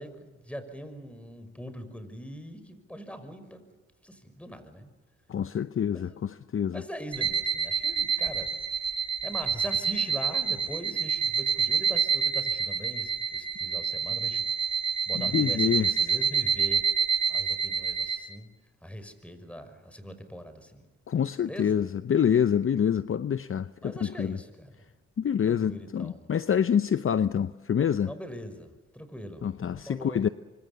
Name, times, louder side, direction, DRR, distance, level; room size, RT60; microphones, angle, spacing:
voice 1, 0.0-3.7 4.0-4.9 5.9-6.2 6.7-8.5 9.2-14.4 15.1-16.9 17.3-18.5 18.8-20.9 21.3-21.9 23.8-24.7 25.4-26.3 28.1-30.3, equal, 5° left, 5.8 m, -42 dB
voice 2, 5.3-6.8 15.1-15.9 21.1-24.4 25.2-28.1 29.4-30.3, left 8 dB, 45° left, 0.7 m, -26 dB
sound 1, 7.1-18.2, right 6 dB, 60° right, 6.3 m, -27 dB
25.5 x 25.5 x 7.0 m
supercardioid pair, 50°, 30 cm